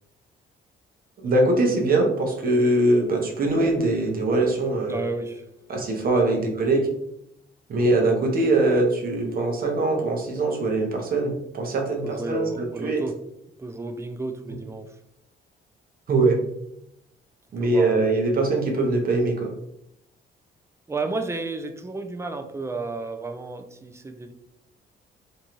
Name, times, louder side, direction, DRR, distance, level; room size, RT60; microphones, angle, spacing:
voice 1, 1.2-5.1 5.7-6.9 7.7-13.0 16.1-16.4 17.5-19.5, right 2 dB, 50° right, 2 dB, 0.8 m, -22 dB
voice 2, 4.9-5.4 6.0-6.4 12.0-13.2 13.6-15.0 17.6-18.2 20.9-24.3, right 3 dB, 15° right, 6 dB, 0.3 m, -32 dB
2.6 x 2.2 x 3.0 m, 0.79 s
cardioid pair, 90°, 20 cm